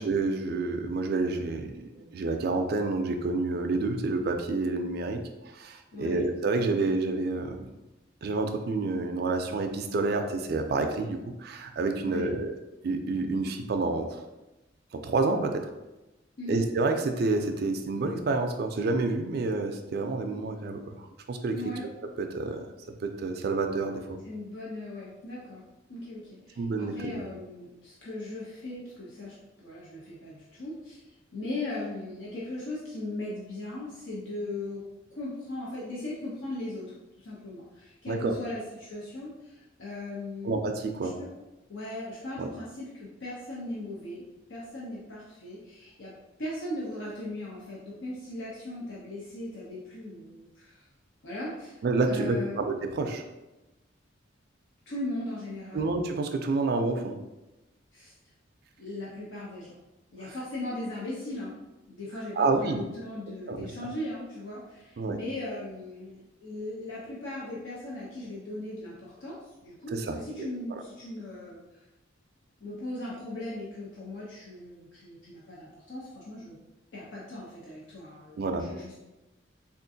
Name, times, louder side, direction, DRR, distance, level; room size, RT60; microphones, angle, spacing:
voice 1, 0.0-7.7 8.2-12.5 12.8-14.2 14.9-15.7 16.5-21.6 22.2-22.6 23.0-24.2 26.6-27.1 38.1-38.3 40.4-41.1 42.4-42.5 51.8-53.2 55.7-57.2 60.2-60.3 62.4-62.8 63.5-63.7 65.0-65.2 69.9-70.5 78.4-78.7, right 3 dB, 55° right, 5 dB, 0.3 m, -29 dB
voice 2, 5.9-6.2 12.0-12.3 16.4-16.6 21.5-21.8 24.2-25.6 25.9-34.9 35.1-40.6 41.2-41.3 41.7-44.2 44.5-46.1 46.4-50.8 51.2-52.6 54.9-55.9 57.9-58.1 58.8-59.7 60.1-61.5 61.9-71.8 72.6-76.6 76.9-79.0, left 1 dB, 70° left, -5 dB, 0.6 m, -38 dB
3.6 x 2.4 x 2.6 m, 1.0 s
head